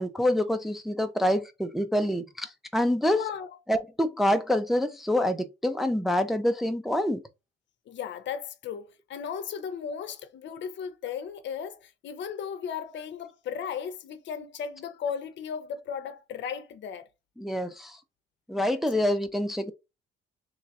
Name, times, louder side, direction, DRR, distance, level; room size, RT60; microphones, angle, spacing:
voice 1, 0.0-3.2 3.7-7.2 17.4-18.0 18.5-19.7, left 1 dB, ahead, 0.4 m, -26 dB
voice 2, 3.1-3.6 7.9-17.1 18.9-19.1, left 7 dB, 65° left, 0.6 m, -36 dB
3.1 x 2.4 x 4.0 m
cardioid pair, 90°, 20 cm